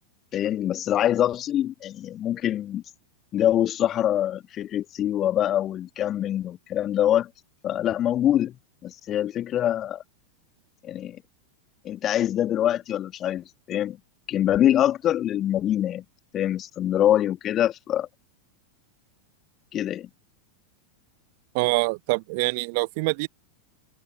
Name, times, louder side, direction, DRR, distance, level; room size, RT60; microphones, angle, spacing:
voice 1, 0.3-2.8 3.3-7.3 7.6-8.5 8.8-10.0 10.8-11.2 11.8-14.0 14.3-16.0 16.3-18.1 19.7-20.1, left 11 dB, 30° left, 1.6 m, -24 dB
voice 2, 21.5-23.3, right 28 dB, 45° right, 1.1 m, -25 dB
open air
figure-of-eight pair, 90°, 0 cm